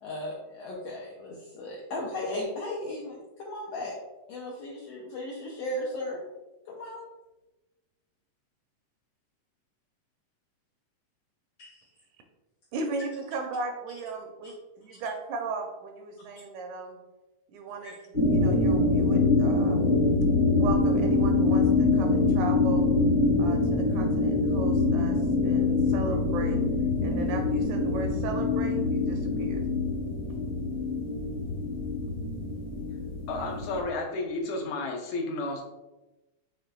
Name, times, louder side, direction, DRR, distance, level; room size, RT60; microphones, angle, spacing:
voice 1, 0.0-3.9 4.3-6.2 6.7-7.1 11.6-11.8 14.4-14.5 14.9-15.0 16.2-16.3 17.8-17.9, left 1 dB, 90° left, -3 dB, 1.4 m, -36 dB
voice 2, 12.7-17.0 17.5-19.9 20.5-22.9 23.4-25.2 25.4-26.6 27.0-29.6, right 3 dB, 80° right, 4 dB, 1.8 m, -36 dB
sound 1, 18.1-33.8, left 3 dB, 60° left, 1.2 m, -25 dB
voice 3, 33.3-35.6, left 2 dB, 75° left, 0 dB, 1.9 m, -32 dB
7.3 x 3.1 x 2.2 m, 1.1 s
omnidirectional pair, 3.6 m